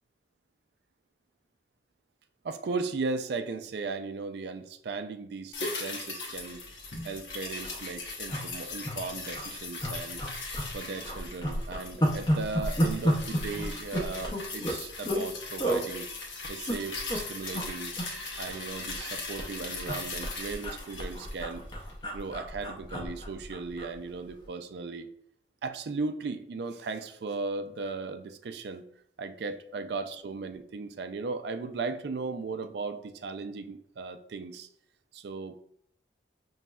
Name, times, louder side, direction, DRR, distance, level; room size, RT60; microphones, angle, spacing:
voice 1, 2.4-6.6 7.0-10.2 10.7-16.1 16.5-17.9 18.4-21.6 22.0-25.1 25.6-28.8 29.2-34.7 35.1-35.6, right 4 dB, 60° right, 9 dB, 0.4 m, -36 dB
sound 1, 5.5-22.0 22.3-22.4, left 3 dB, 80° left, 0.9 m, -39 dB
sound 2, 6.8-7.0 7.3-7.4 7.6-7.8 8.3-9.0 9.3-9.4 9.8-10.7 11.0-15.3 15.6-15.8 16.4-17.2 17.5-17.7 18.0-19.1 19.4-23.9 24.3-24.4, equal, 25° left, 0.6 m, -31 dB
5.5 x 3.1 x 2.3 m, 0.69 s
head